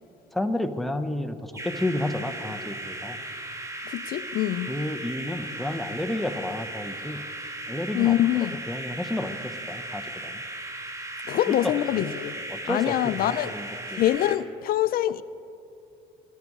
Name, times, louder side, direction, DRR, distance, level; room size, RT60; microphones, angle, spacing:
voice 1, 0.3-3.2 4.7-7.3 7.7-10.4 11.5-12.1 12.5-14.0, left 1 dB, ahead, 5 dB, 0.9 m, -31 dB
sound 1, 1.5-14.4, right 1 dB, 15° right, 1.5 m, -37 dB
voice 2, 3.9-4.7 7.9-8.6 11.3-12.4 12.7-13.5 14.0-15.2, left 13 dB, 60° left, 14 dB, 0.4 m, -24 dB
22.0 x 12.5 x 4.8 m, 2.8 s
cardioid pair, 110°, 17 cm